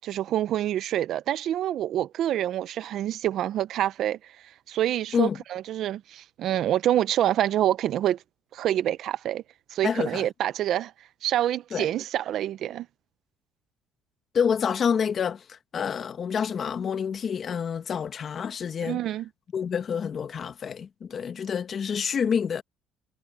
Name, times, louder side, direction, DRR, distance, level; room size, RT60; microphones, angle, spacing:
voice 1, 0.0-4.2 4.7-8.2 8.5-9.4 9.7-10.9 11.2-12.9 18.8-19.3, right 12 dB, 60° right, 0.7 m, -26 dB
voice 2, 9.8-10.3 11.7-11.9 14.3-19.0 19.5-22.6, left 7 dB, 40° left, 1.4 m, -28 dB
cardioid pair, 115°, 0 cm